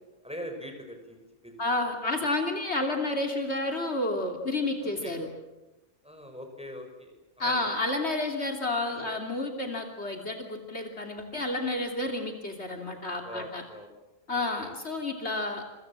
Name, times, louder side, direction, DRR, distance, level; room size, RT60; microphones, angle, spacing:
voice 1, 0.2-1.6 4.8-5.2 6.0-7.1 7.4-7.7 8.9-9.2 13.2-13.9 14.3-14.7, equal, 5° right, 4 dB, 5.8 m, -42 dB
voice 2, 1.6-5.3 7.4-13.6 14.3-15.6, left 2 dB, 60° left, 3 dB, 3.3 m, -30 dB
27.5 x 25.0 x 7.4 m, 1.0 s
omnidirectional pair, 1.3 m